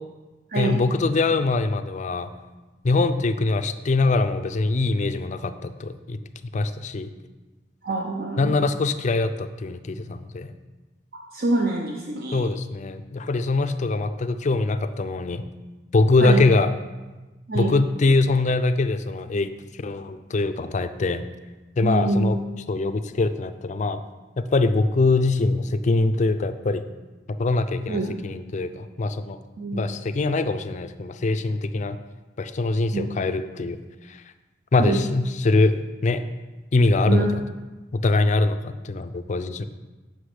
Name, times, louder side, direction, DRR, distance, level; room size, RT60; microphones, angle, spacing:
voice 1, 0.6-2.3 2.8-6.2 6.5-7.1 8.4-10.5 12.3-15.4 15.9-16.7 17.5-19.5 19.8-21.2 21.8-22.4 22.7-24.0 24.4-26.8 27.4-29.4 29.7-32.0 32.4-33.8 34.1-34.2 34.7-35.7 36.0-36.2 36.7-37.4 37.9-39.6, left 3 dB, 40° left, 10 dB, 0.4 m, -23 dB
voice 2, 7.8-8.5 11.3-12.5 16.2-16.4 17.5-17.7 21.8-22.3 27.9-28.1 29.6-29.8 32.9-33.1 34.8-35.0 37.0-37.4, right 2 dB, 60° right, 0 dB, 0.7 m, -25 dB
7.9 x 6.1 x 4.9 m, 1.2 s
head